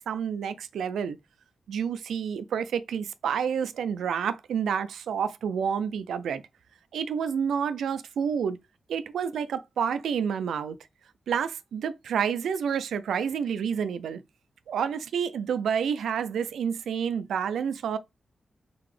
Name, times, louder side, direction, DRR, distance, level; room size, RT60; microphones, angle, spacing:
voice 1, 0.1-1.2 1.7-6.4 6.9-8.6 8.9-10.8 11.3-14.2 14.7-18.0, right 7 dB, 90° right, 0.3 m, -29 dB
3.9 x 3.7 x 3.2 m
cardioid pair, 45°, 0 cm